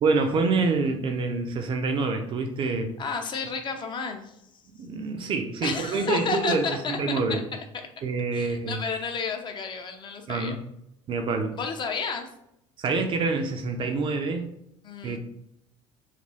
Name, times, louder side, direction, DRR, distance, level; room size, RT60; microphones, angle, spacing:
voice 1, 0.0-2.9 4.8-7.4 8.0-8.8 10.3-10.6 11.1-11.6 12.8-14.4 15.0-15.2, right 4 dB, 30° right, 5 dB, 0.4 m, -26 dB
voice 2, 3.0-4.4 5.6-7.4 8.3-10.6 11.5-12.3 14.8-15.2, left 4 dB, 30° left, 5 dB, 0.4 m, -31 dB
2.9 x 2.4 x 2.7 m, 0.80 s
figure-of-eight pair, 65°, 16 cm